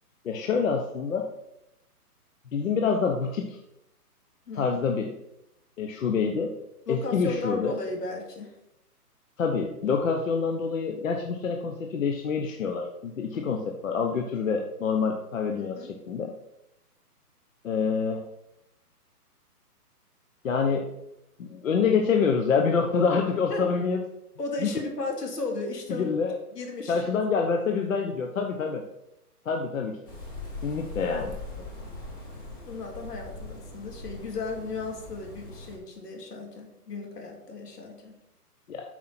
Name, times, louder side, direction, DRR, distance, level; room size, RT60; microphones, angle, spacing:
voice 1, 0.2-1.2 2.5-3.6 4.5-5.1 5.8-6.5 6.9-7.8 9.4-16.3 17.6-18.2 20.4-20.9 21.4-24.0 24.6-24.7 25.9-26.3 26.9-28.8 29.5-30.0 30.6-31.6 38.7-38.8, left 5 dB, 55° left, 3 dB, 1.0 m, -26 dB
voice 2, 6.9-8.5 13.3-13.5 15.5-15.9 23.5-23.6 24.4-26.1 26.5-27.3 32.7-38.1, left 3 dB, 80° left, 2 dB, 2.7 m, -35 dB
sound 1, 30.1-35.8, left 2 dB, 15° left, 0.7 m, -41 dB
8.3 x 4.5 x 5.7 m, 0.86 s
hypercardioid pair, 160°, 47 cm